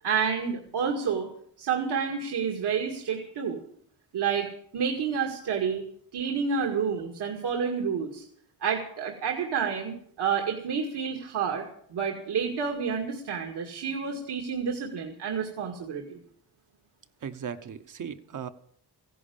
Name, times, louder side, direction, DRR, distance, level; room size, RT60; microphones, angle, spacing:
voice 1, 0.0-1.3 1.6-3.6 4.1-4.5 4.7-5.8 6.1-8.2 8.6-11.6 11.9-16.2, right 6 dB, 70° right, 0 dB, 2.2 m, -29 dB
voice 2, 17.2-18.5, right 7 dB, 50° right, 9 dB, 1.1 m, -37 dB
16.0 x 11.0 x 7.1 m, 0.64 s
wide cardioid pair, 150°, 41 cm